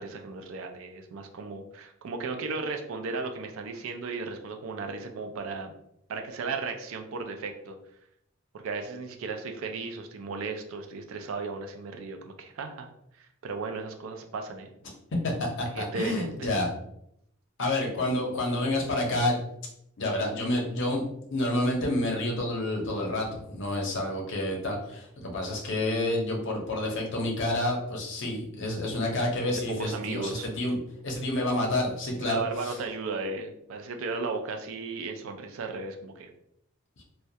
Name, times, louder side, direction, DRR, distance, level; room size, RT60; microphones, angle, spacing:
voice 1, 0.0-5.7 6.1-7.8 8.5-12.9 13.2-14.7 15.7-16.5 29.5-30.5 32.2-36.3, right 4 dB, 70° right, 5 dB, 0.4 m, -35 dB
voice 2, 15.2-16.7 17.6-19.4 20.0-21.0 21.3-30.8 31.0-32.7, left 1 dB, 60° left, 0 dB, 0.6 m, -29 dB
2.2 x 2.1 x 2.6 m, 0.75 s
head